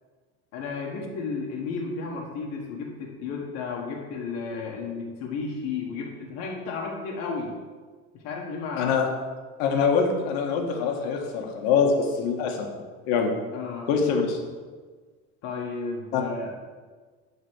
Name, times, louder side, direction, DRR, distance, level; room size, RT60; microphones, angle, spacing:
voice 1, 0.5-7.6 8.1-8.9 13.5-13.9 15.4-16.7, left 4 dB, 50° left, -1 dB, 1.5 m, -33 dB
voice 2, 8.8-9.1 9.6-13.3 13.9-14.4 16.1-16.2, left 5 dB, 75° left, 2 dB, 1.7 m, -24 dB
11.0 x 4.1 x 6.4 m, 1.4 s
cardioid pair, 165°, 32 cm